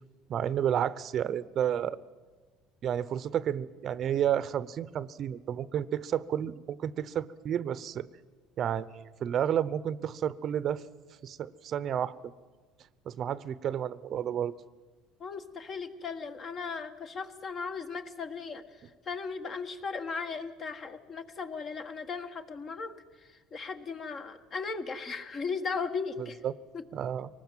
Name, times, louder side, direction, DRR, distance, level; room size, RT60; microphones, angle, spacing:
voice 1, 0.3-2.0 2.8-8.1 8.6-10.8 11.2-12.1 13.1-14.5 26.4-26.5 26.9-27.3, right 9 dB, 45° right, 17 dB, 0.8 m, -31 dB
voice 2, 15.2-26.4 26.7-26.9, left 5 dB, 35° left, 8 dB, 1.6 m, -37 dB
24.0 x 19.5 x 7.5 m, 1.3 s
cardioid pair, 120°, 0 cm